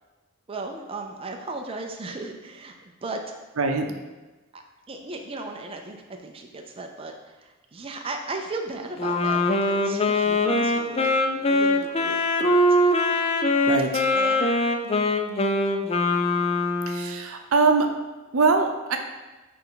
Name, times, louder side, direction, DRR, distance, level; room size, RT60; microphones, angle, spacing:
voice 1, 0.5-2.7 3.0-3.2 4.5-4.6 4.9-12.6 14.1-14.6, right 2 dB, 25° right, 3 dB, 0.5 m, -36 dB
Wind instrument woodwind instrument, 9.0-17.2, left 2 dB, 30° left, 0.4 m, -22 dB
voice 2, 13.6-14.1 16.9-17.9 18.3-19.0, right 4 dB, 80° right, 5 dB, 0.7 m, -22 dB
8.8 x 3.4 x 3.8 m, 1.2 s
head